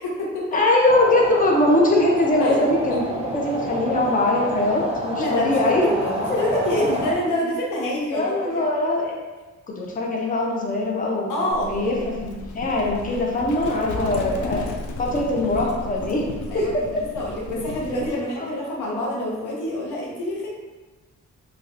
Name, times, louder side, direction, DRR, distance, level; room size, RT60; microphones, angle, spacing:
voice 1, 0.0-0.4 2.4-2.6 2.9-3.0 5.1-8.7 11.3-12.0 13.8-14.4 16.5-20.5, left 1 dB, 90° left, -3 dB, 0.8 m, -27 dB
voice 2, 0.5-3.0 3.3-5.9 8.0-9.1 9.8-14.6 15.0-16.7 18.4-18.5, left 2 dB, 25° left, -1 dB, 0.6 m, -22 dB
sound 1, 0.9-7.1, right 1 dB, 20° right, 0.8 m, -29 dB
Livestock farm animals working animals, 11.5-18.2, left 2 dB, 75° left, 0.5 m, -34 dB
3.1 x 2.8 x 2.5 m, 1.2 s
cardioid pair, 80°, 30 cm